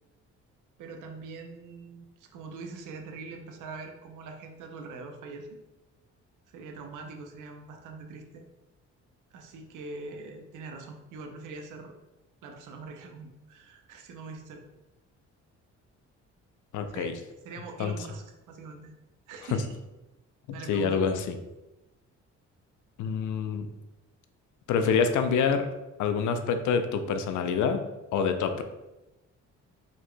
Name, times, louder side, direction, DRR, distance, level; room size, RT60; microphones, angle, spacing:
voice 1, 0.8-5.6 6.5-8.4 9.3-11.9 12.4-14.7 16.9-17.2 17.4-18.9 19.3-19.8 20.5-21.0, right 3 dB, 85° right, 4 dB, 0.7 m, -43 dB
voice 2, 16.7-17.1 17.8-18.0 19.5-19.6 20.7-21.3 23.0-23.7 24.7-25.7 26.0-27.8 28.1-28.6, left 6 dB, 75° left, 8 dB, 0.6 m, -26 dB
4.7 x 4.2 x 2.2 m, 1.0 s
cardioid pair, 90°, 30 cm